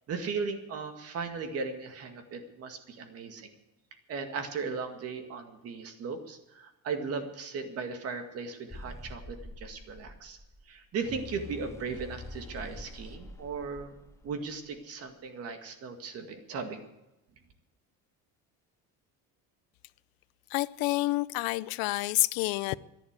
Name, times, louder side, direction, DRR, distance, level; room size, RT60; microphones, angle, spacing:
voice 1, 0.1-3.5 4.1-10.4 10.7-14.0 14.2-16.8, right 5 dB, 45° right, 2.0 m, -37 dB
sound 1, 8.7-14.8, left 2 dB, 10° left, 0.6 m, -46 dB
voice 2, 20.5-22.8, left 21 dB, 85° left, 0.6 m, -28 dB
14.0 x 11.0 x 8.2 m
cardioid pair, 165°, 34 cm